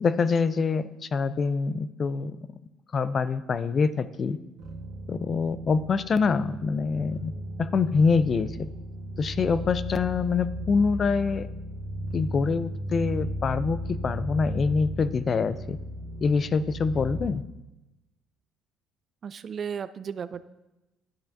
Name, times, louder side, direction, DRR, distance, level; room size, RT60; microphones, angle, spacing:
voice 1, 0.0-2.4 2.9-4.4 5.1-7.3 7.6-8.5 9.2-11.5 12.1-15.8 16.2-17.4, left 5 dB, 40° left, 14 dB, 0.3 m, -25 dB
sound 1, 4.6-17.3, equal, 80° right, 1.8 m, -35 dB
voice 2, 19.2-20.4, right 7 dB, 40° right, 14 dB, 0.3 m, -34 dB
11.5 x 5.5 x 2.6 m, 1.0 s
cardioid pair, 100°, 0 cm